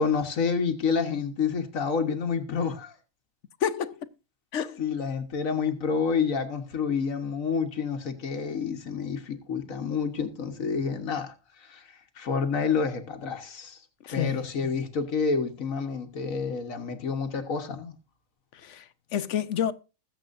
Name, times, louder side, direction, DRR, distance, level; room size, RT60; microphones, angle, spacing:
voice 1, 0.0-2.9 4.8-11.3 11.6-13.8 14.1-17.9, left 5 dB, 85° left, 1.7 m, -28 dB
voice 2, 3.6-4.0 4.5-4.8 14.1-14.4 18.6-19.7, left 9 dB, 65° left, 1.1 m, -29 dB
21.0 x 7.5 x 2.6 m
omnidirectional pair, 1.4 m